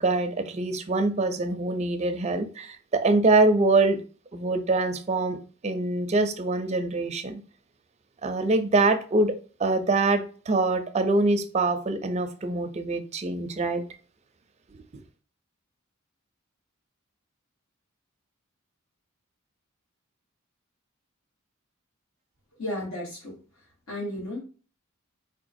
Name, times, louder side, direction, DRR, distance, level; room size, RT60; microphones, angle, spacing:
voice 1, 0.0-4.0 4.3-7.4 8.2-9.3 9.6-13.8, right 2 dB, 30° right, 0.5 m, -24 dB
voice 2, 22.6-24.4, left 1 dB, 85° left, 2.1 m, -34 dB
4.4 x 3.0 x 2.6 m
head